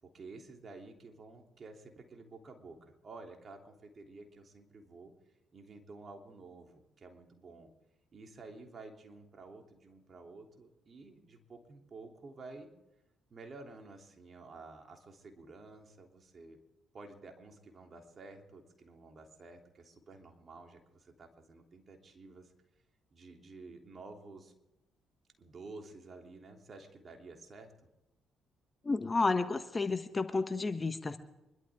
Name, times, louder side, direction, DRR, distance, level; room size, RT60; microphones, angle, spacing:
voice 1, 0.0-5.1 5.5-7.7 8.1-12.7 13.3-16.6 16.9-22.5 23.1-24.5 25.4-27.7, right 3 dB, 45° right, 3 dB, 3.2 m, -51 dB
voice 2, 28.8-31.2, left 3 dB, 30° left, 9 dB, 1.3 m, -31 dB
25.0 x 12.5 x 3.7 m, 0.95 s
hypercardioid pair, 50°, 0 cm